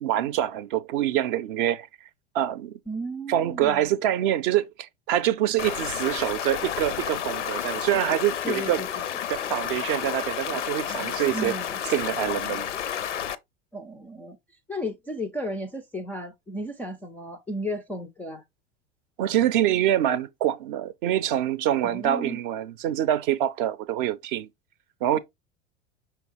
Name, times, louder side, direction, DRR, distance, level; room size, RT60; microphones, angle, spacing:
voice 1, 0.0-1.9 2.3-2.7 3.3-8.8 9.3-11.5 11.9-12.7 19.2-24.5 25.0-25.2, right 12 dB, 45° right, 0.5 m, -25 dB
voice 2, 2.9-3.9 8.4-9.0 11.3-11.7 13.7-14.4 14.7-18.4 21.8-22.4, equal, 5° left, 0.3 m, -34 dB
Stream, 5.6-13.4, left 9 dB, 80° left, 0.5 m, -31 dB
5.8 x 3.2 x 2.8 m
figure-of-eight pair, 80°, 35 cm